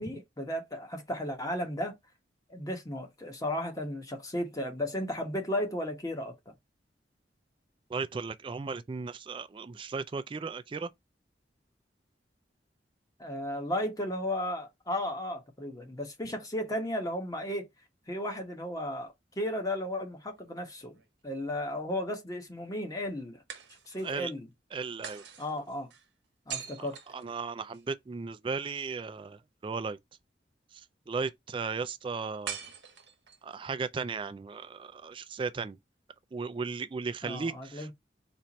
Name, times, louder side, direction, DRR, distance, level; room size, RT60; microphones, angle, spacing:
voice 1, 0.0-2.0 2.5-6.5 13.2-17.7 18.1-21.0 21.2-23.4 23.9-24.5 25.4-25.9 26.5-27.0 37.2-37.9, left 1 dB, 20° left, 1.0 m, -34 dB
voice 2, 7.9-10.9 24.0-24.3 24.7-25.2 26.8-26.9 27.1-30.0 30.7-32.6 33.4-35.8 36.3-37.9, right 4 dB, 30° right, 0.3 m, -36 dB
sound 1, 20.4-21.4 23.5-24.2 25.0-27.9 32.4-33.5, right 7 dB, 80° right, 1.1 m, -44 dB
4.4 x 2.5 x 4.0 m
head